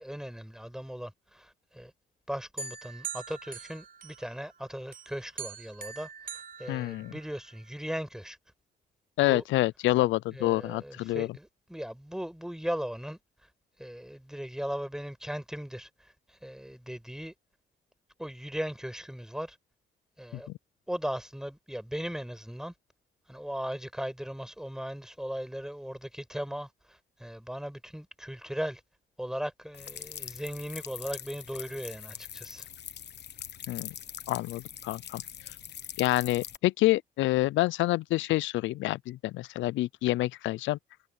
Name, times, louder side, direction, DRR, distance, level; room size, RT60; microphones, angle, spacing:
voice 1, 0.0-1.5 1.7-1.9 2.3-6.1 6.6-8.4 9.2-9.4 10.3-13.2 13.8-15.9 16.4-17.3 18.2-19.5 20.2-20.5 20.9-22.7 23.3-26.7 27.2-28.8 29.2-32.6, equal, 5° right, 5.1 m, -37 dB
sound 1, 2.6-4.5 4.9-7.5, right 6 dB, 50° right, 5.8 m, -42 dB
voice 2, 6.7-7.1 9.2-11.4 33.7-33.9 34.3-35.2 36.0-40.8, left 17 dB, 90° left, 0.4 m, -27 dB
sound 2, 29.7-36.6, left 9 dB, 65° left, 1.2 m, -43 dB
cardioid pair, 75°, 19 cm